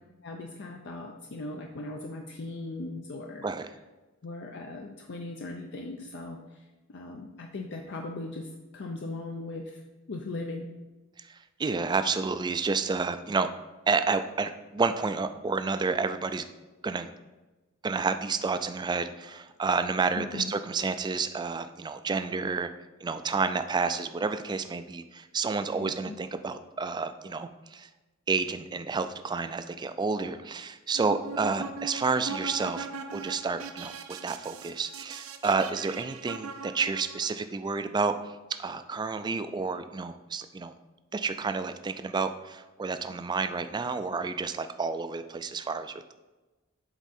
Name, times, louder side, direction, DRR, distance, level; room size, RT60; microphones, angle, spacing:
voice 1, 0.2-3.4 4.2-6.4 6.9-8.5 8.7-9.8 10.1-10.7 20.2-20.5 25.8-26.2, left 2 dB, 55° left, 2 dB, 0.5 m, -38 dB
voice 2, 3.4-3.7 11.2-13.5 13.9-16.5 16.8-17.1 17.8-22.7 23.0-27.9 28.3-40.7 41.1-46.1, right 4 dB, 20° right, 10 dB, 0.3 m, -30 dB
sound 1, 30.9-37.3, right 5 dB, 85° right, 0.5 m, -40 dB
8.0 x 3.6 x 4.2 m, 1.2 s
head